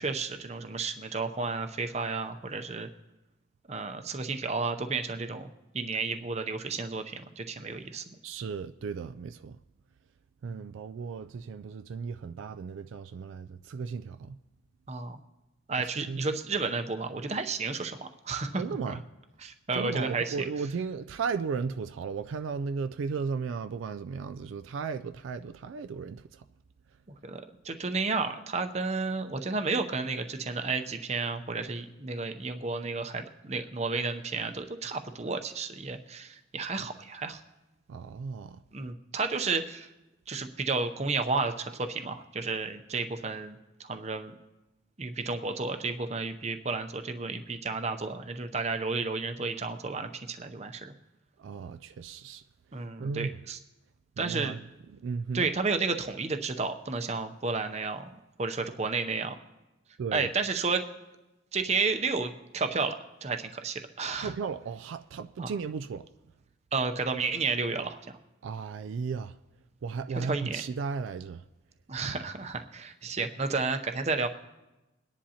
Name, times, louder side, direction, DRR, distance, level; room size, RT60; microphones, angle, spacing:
voice 1, 0.0-2.9 3.7-5.5 5.7-8.1 10.5-10.6 14.9-15.2 15.7-19.0 19.4-20.5 27.2-37.4 38.7-39.9 40.3-44.3 45.0-50.9 52.7-53.6 54.2-54.6 55.3-58.0 58.4-59.3 60.1-60.8 61.5-64.3 65.4-65.5 66.7-68.0 70.1-70.6 71.9-74.3, right 4 dB, 35° right, 0.6 m, -32 dB
voice 2, 8.2-9.6 10.4-14.4 16.1-16.4 18.5-19.0 19.7-26.4 37.9-38.6 51.4-52.4 53.0-53.3 54.2-54.6 55.0-55.5 60.0-60.3 64.2-66.1 68.4-69.4 69.8-71.4, right 5 dB, 75° right, 0.3 m, -35 dB
22.0 x 10.0 x 2.8 m
head